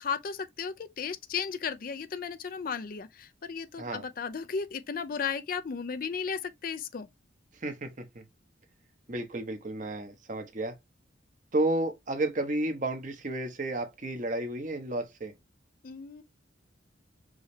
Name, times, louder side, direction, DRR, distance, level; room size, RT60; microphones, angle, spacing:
voice 1, 0.0-7.1 15.8-16.2, left 6 dB, 45° left, 0.4 m, -35 dB
voice 2, 7.6-8.2 9.1-10.7 11.5-15.3, right 2 dB, 40° right, 0.9 m, -32 dB
5.0 x 3.1 x 2.7 m
head